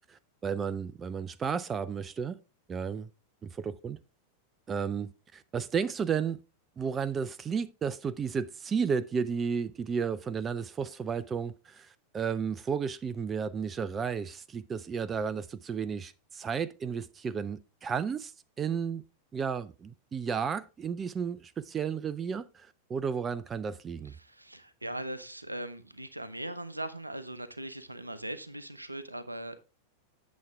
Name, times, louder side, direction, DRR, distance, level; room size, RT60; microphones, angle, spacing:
voice 1, 0.1-2.4 2.7-3.1 3.4-4.0 4.7-6.4 6.8-18.3 18.6-19.0 19.3-24.1, right 6 dB, 20° right, 0.4 m, -33 dB
voice 2, 24.1-29.6, right 1 dB, 85° right, 0.8 m, -40 dB
8.4 x 7.2 x 3.4 m
figure-of-eight pair, 90°, 0 cm